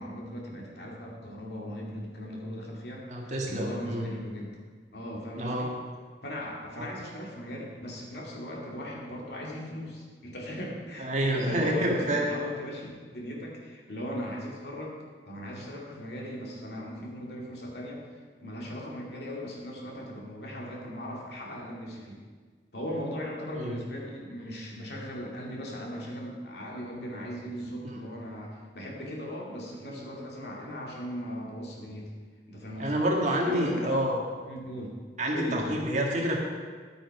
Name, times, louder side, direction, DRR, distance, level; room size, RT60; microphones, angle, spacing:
voice 1, 0.0-4.6 4.9-5.7 6.2-15.0 15.3-18.0 18.4-22.2 22.7-32.1 32.5-32.9 33.4-33.9 34.5-34.9 35.3-35.8, equal, 65° left, -2 dB, 2.4 m, -38 dB
voice 2, 3.1-4.1 5.4-5.7 6.8-6.9 11.0-12.2 23.6-23.8 32.8-34.2 35.2-36.4, right 1 dB, 40° right, -1 dB, 1.9 m, -28 dB
11.0 x 9.1 x 4.9 m, 1.5 s
head